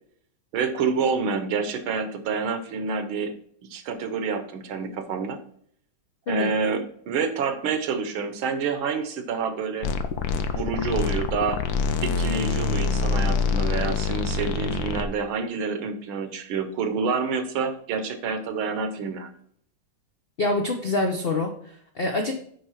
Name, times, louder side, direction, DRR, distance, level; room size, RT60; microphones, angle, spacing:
voice 1, 0.5-3.3 3.7-5.4 6.3-9.9 10.5-11.6 12.0-19.3, right 5 dB, 80° right, 9 dB, 1.7 m, -28 dB
sound 1, 9.8-15.0, left 5 dB, 65° left, 1.0 m, -25 dB
voice 2, 20.4-22.3, left 2 dB, 90° left, 3 dB, 0.5 m, -26 dB
9.4 x 3.3 x 5.6 m, 0.63 s
omnidirectional pair, 2.2 m